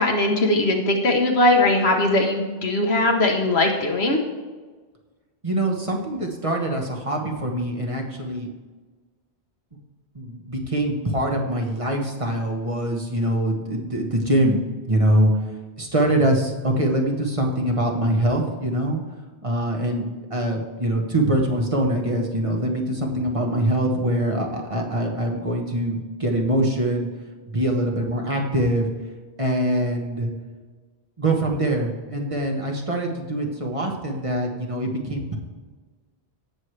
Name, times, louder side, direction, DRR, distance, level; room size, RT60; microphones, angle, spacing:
voice 1, 0.0-4.2, left 2 dB, 70° left, 2 dB, 1.3 m, -20 dB
voice 2, 5.4-8.5 10.1-15.3 15.8-19.0 19.4-27.1 27.5-28.9 29.4-30.3 31.2-35.4, right 1 dB, 30° right, 1 dB, 1.2 m, -23 dB
17.0 x 6.3 x 3.3 m, 1.4 s
omnidirectional pair, 1.1 m